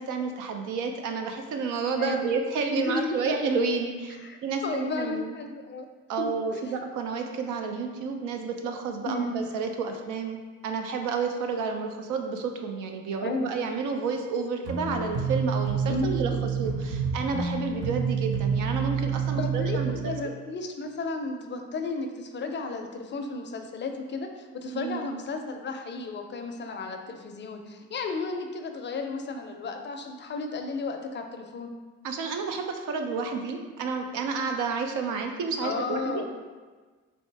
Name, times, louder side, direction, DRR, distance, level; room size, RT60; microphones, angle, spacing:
voice 1, 0.0-4.2 4.4-5.4 6.1-10.4 10.6-20.1 24.7-25.1 32.0-36.2, right 4 dB, 85° right, 4 dB, 0.5 m, -30 dB
voice 2, 2.8-3.4 4.1-4.4 4.6-5.9 6.2-6.7 9.0-9.4 13.2-13.5 15.9-16.5 19.4-31.7 35.6-36.2, left 3 dB, 40° left, 5 dB, 0.4 m, -33 dB
sound 1, 14.6-20.0, right 6 dB, 50° right, 0.9 m, -28 dB
4.0 x 2.7 x 3.3 m, 1.4 s
cardioid pair, 90°, 30 cm